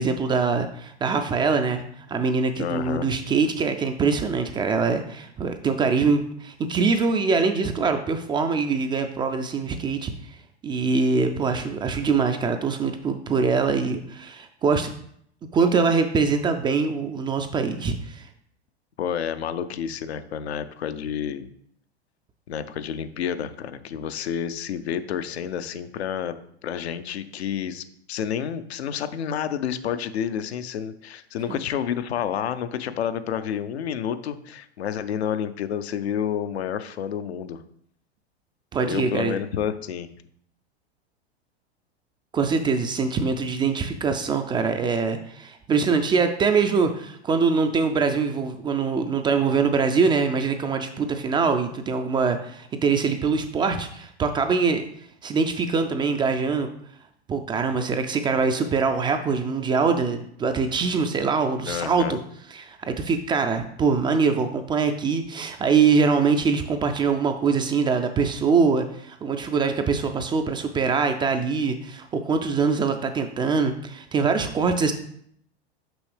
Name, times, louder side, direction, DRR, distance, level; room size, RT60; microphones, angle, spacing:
voice 1, 0.0-1.8 2.1-10.4 10.6-14.9 15.5-18.3 38.7-39.4 42.3-54.9 55.2-56.7 57.3-62.2 62.5-74.9, right 5 dB, 15° right, 7 dB, 0.3 m, -23 dB
voice 2, 2.6-3.1 19.0-21.5 22.5-26.3 26.6-37.6 38.9-40.1 61.6-62.2, left 8 dB, 75° left, 10 dB, 0.6 m, -29 dB
6.1 x 5.5 x 3.3 m, 0.68 s
hypercardioid pair, 95°, 33 cm